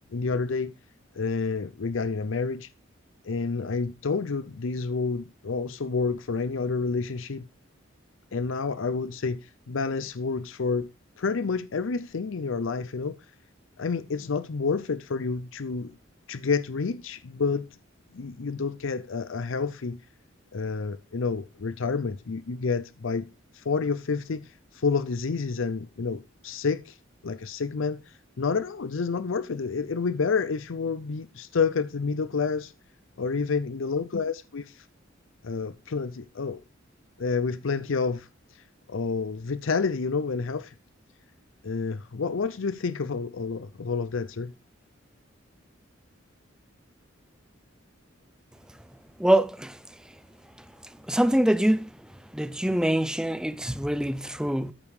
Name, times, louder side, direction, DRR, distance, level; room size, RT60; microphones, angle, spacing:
voice 1, 0.1-0.7 1.1-2.7 3.2-7.5 8.3-10.9 11.2-13.2 13.8-15.9 16.3-17.7 18.1-20.0 20.5-23.3 23.5-27.0 27.2-32.7 33.2-34.9 35.4-36.6 37.2-40.7 41.6-44.5, left 4 dB, 75° left, 0.6 m, -29 dB
voice 2, 49.2-49.8 51.1-51.8 52.3-54.7, right 1 dB, 5° right, 0.5 m, -24 dB
13.5 x 5.3 x 4.8 m
head